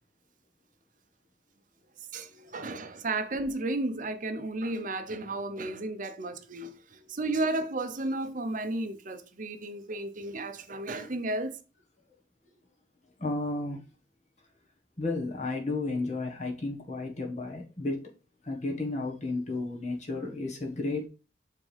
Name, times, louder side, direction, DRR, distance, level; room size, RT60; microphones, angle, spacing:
voice 1, 2.1-11.6, right 2 dB, 45° right, 0.8 m, -33 dB
voice 2, 13.2-13.8 15.0-18.1 18.4-21.1, left 2 dB, 40° left, 1.5 m, -33 dB
7.7 x 3.7 x 3.4 m
head